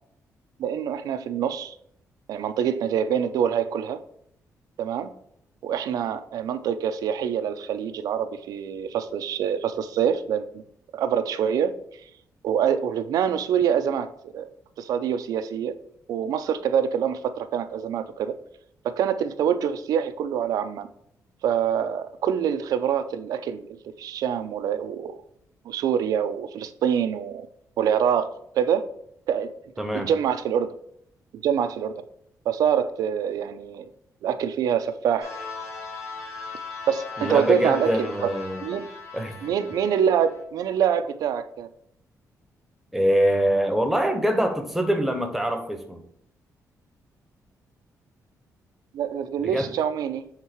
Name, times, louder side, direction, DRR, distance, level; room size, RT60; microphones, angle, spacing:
voice 1, 0.6-1.8 2.3-4.0 4.8-5.1 5.6-10.6 10.9-11.8 12.4-14.5 14.8-15.8 16.1-18.3 18.8-20.9 21.4-23.7 24.0-25.1 25.6-27.5 27.8-28.9 29.3-29.5 29.9-30.7 31.3-31.9 32.5-33.9 34.2-35.3 36.9-38.1 38.6-38.9 39.4-41.7 48.9-50.3, right 8 dB, 85° right, 10 dB, 0.6 m, -25 dB
voice 2, 29.8-30.1 37.2-38.6 39.1-39.4 42.9-46.0 49.4-49.7, equal, 5° right, 5 dB, 1.0 m, -24 dB
sound 1, 35.2-40.4, left 4 dB, 60° left, 2.8 m, -38 dB
7.3 x 3.7 x 4.5 m, 0.70 s
cardioid pair, 130°, 6 cm